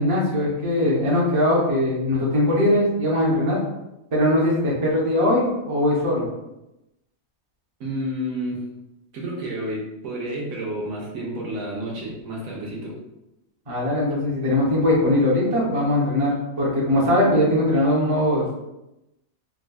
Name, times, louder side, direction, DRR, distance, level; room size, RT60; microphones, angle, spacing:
voice 1, 0.0-3.6 4.1-6.3 13.7-18.5, left 1 dB, 30° right, -6 dB, 0.7 m, -20 dB
voice 2, 7.8-8.6 9.1-12.9, right 1 dB, 75° right, -3 dB, 1.1 m, -30 dB
3.6 x 2.2 x 2.2 m, 0.93 s
omnidirectional pair, 1.5 m